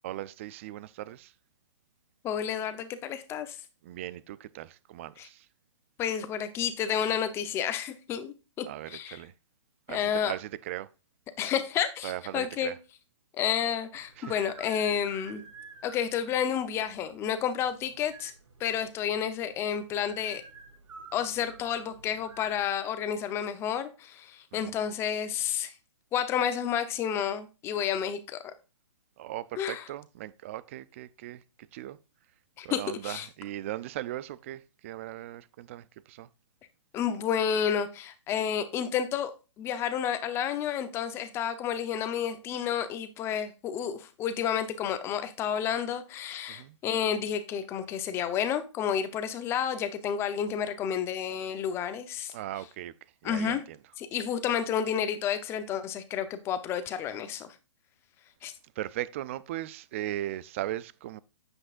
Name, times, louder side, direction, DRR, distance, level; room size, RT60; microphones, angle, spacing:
voice 1, 0.0-1.3 3.8-5.5 8.7-9.3 9.9-10.9 12.0-12.8 14.2-14.3 24.5-24.7 29.2-31.4 31.7-32.0 32.6-36.3 46.5-46.8 52.3-52.9 53.2-53.8 58.8-61.2, right 14 dB, 25° right, 0.3 m, -38 dB
voice 2, 2.2-3.6 5.2-5.3 6.0-9.2 9.9-10.3 11.4-12.7 13.3-15.4 15.8-18.3 18.6-20.4 21.1-25.7 26.1-28.5 29.6-29.8 32.6-33.3 36.9-39.3 39.6-52.3 53.2-53.6 54.0-57.6 58.4-58.5, left 8 dB, 15° left, 0.8 m, -30 dB
sound 1, 13.9-22.6, right 4 dB, 80° right, 4.7 m, -51 dB
9.6 x 7.9 x 2.5 m
hypercardioid pair, 155°, 16 cm